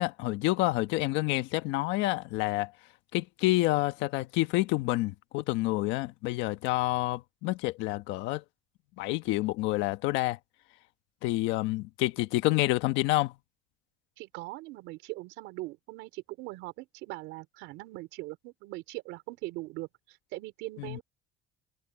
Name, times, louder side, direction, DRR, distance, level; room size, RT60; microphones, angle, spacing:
voice 1, 0.0-2.7 3.1-8.4 9.0-10.4 11.2-13.3 20.8-21.0, left 18 dB, 75° left, 1.3 m, -28 dB
voice 2, 14.2-21.0, right 20 dB, 75° right, 4.2 m, -41 dB
cardioid pair, 165°, 20 cm